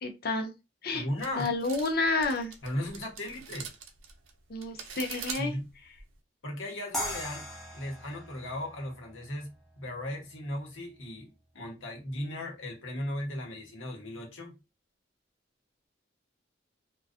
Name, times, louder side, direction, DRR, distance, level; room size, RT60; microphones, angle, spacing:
voice 1, 0.0-0.5 0.8-1.1 1.4-2.5 4.5-5.5, left 3 dB, 50° left, 0.5 m, -30 dB
voice 2, 0.9-1.5 2.6-3.7 5.4-5.7 6.4-9.5 9.8-11.3 11.5-14.5, left 1 dB, 80° left, 0.9 m, -36 dB
sound 1, 1.2-6.2, right 6 dB, 85° right, 0.5 m, -43 dB
sound 2, 6.9-10.0, equal, ahead, 0.6 m, -39 dB
2.4 x 2.2 x 2.4 m
head